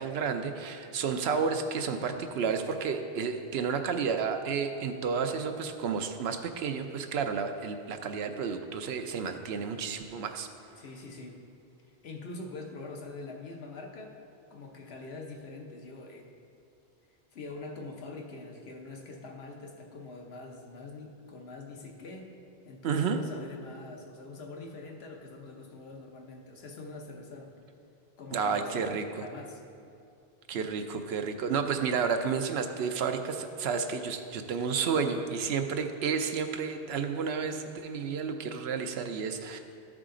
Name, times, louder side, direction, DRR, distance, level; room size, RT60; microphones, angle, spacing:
voice 1, 0.0-10.5 22.8-23.2 28.3-29.0 30.5-39.6, right 6 dB, 80° right, 7 dB, 0.9 m, -31 dB
voice 2, 10.8-11.4 12.0-14.1 14.5-16.3 17.3-22.3 22.7-27.5 28.2-29.6, left 3 dB, 75° left, 2 dB, 1.1 m, -44 dB
13.5 x 4.9 x 3.7 m, 2.6 s
omnidirectional pair, 1.1 m